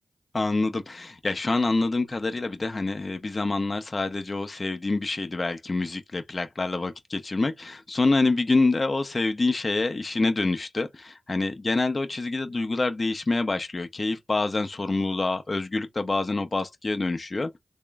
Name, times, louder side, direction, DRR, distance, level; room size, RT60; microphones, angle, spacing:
voice 1, 0.3-17.5, left 3 dB, 45° left, 0.6 m, -26 dB
3.5 x 2.1 x 3.3 m
cardioid pair, 40°, 0 cm